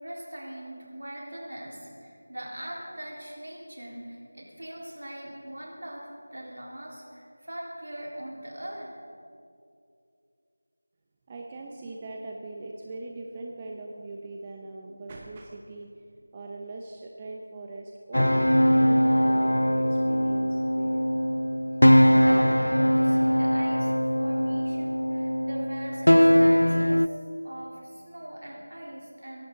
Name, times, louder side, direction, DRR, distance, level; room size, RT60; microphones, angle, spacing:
voice 1, 0.0-8.9 22.2-27.1 27.4-29.5, right 1 dB, 70° right, -3 dB, 4.1 m, -40 dB
voice 2, 11.3-16.0 16.3-21.1, right 2 dB, 20° right, 0 dB, 0.7 m, -40 dB
sound 1, 18.1-27.1, equal, 85° left, 0.5 m, -21 dB
23.0 x 11.5 x 4.0 m, 2.5 s
figure-of-eight pair, 170°, 0 cm